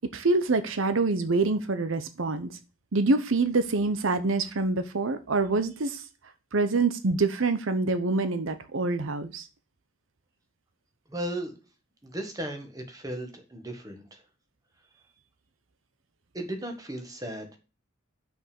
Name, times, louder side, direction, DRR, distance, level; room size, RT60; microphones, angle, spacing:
voice 1, 0.1-2.6 2.9-6.0 6.5-9.5, right 3 dB, 80° right, 0.8 m, -26 dB
voice 2, 11.1-11.5 12.0-14.2 16.3-17.5, right 1 dB, 20° right, 1.7 m, -36 dB
6.2 x 5.3 x 6.9 m
head